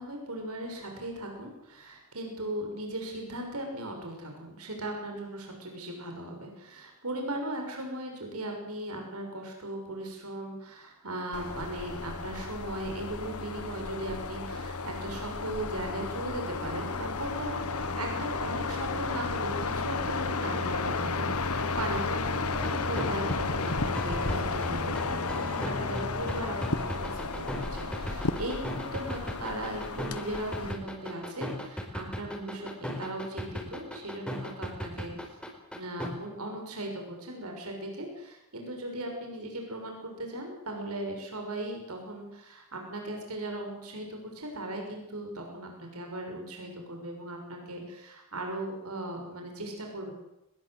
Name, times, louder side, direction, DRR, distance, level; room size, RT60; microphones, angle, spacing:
voice 1, 0.0-27.4 27.7-35.1 35.7-50.1, right 1 dB, 90° right, 2 dB, 6.3 m, -38 dB
sound 1, 11.3-30.7, left 3 dB, 85° left, 1.5 m, -33 dB
sound 2, 22.5-36.1, equal, 5° left, 4.7 m, -37 dB
22.0 x 21.5 x 8.1 m, 0.90 s
head